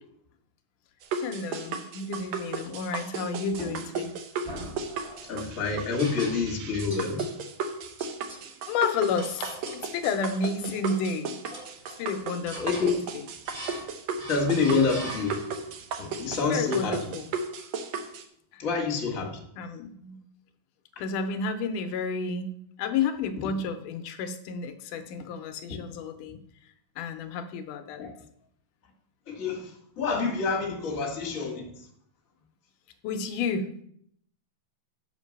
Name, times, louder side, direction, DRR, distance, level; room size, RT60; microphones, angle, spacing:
sound 1, 1.0-18.2, right 5 dB, 75° right, 1.7 m, -35 dB
voice 1, 1.2-4.1 8.7-11.3 12.0-12.9 14.7-14.9 16.5-17.3 18.5-18.7 19.6-20.2 21.0-22.5 22.8-26.4 27.0-28.0 33.0-33.8, left 5 dB, 80° left, 7 dB, 2.0 m, -31 dB
sound 2, 3.5-4.0 4.4-5.3 6.0-6.6 6.9-7.4 8.0-8.4 9.2-9.9 10.3-11.0 11.5-12.1 12.5-13.0 13.4-13.9 14.2-15.7, right 1 dB, 45° right, 0.7 m, -41 dB
voice 2, 5.3-7.2 12.6-13.0 14.3-15.4 16.0-17.2 18.6-19.4 25.7-25.8 28.0-28.1 29.3-29.7 30.0-31.7, left 4 dB, 40° left, 0 dB, 1.2 m, -27 dB
7.3 x 5.8 x 6.4 m, 0.68 s
omnidirectional pair, 4.2 m